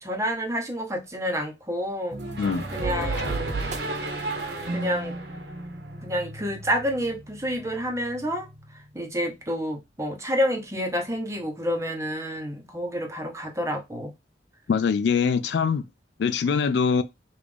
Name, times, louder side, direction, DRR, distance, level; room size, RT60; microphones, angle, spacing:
voice 1, 0.0-2.2 2.7-3.5 4.7-5.1 6.0-8.5 8.7-14.1, equal, 15° right, 0.9 m, -29 dB
sound 1, 2.1-8.9, right 2 dB, 45° right, 0.5 m, -35 dB
sound 2, 2.1-6.3, right 2 dB, 75° right, 1.2 m, -34 dB
voice 2, 14.7-15.8 16.2-17.0, left 5 dB, 70° left, 0.3 m, -23 dB
5.0 x 2.5 x 3.4 m
head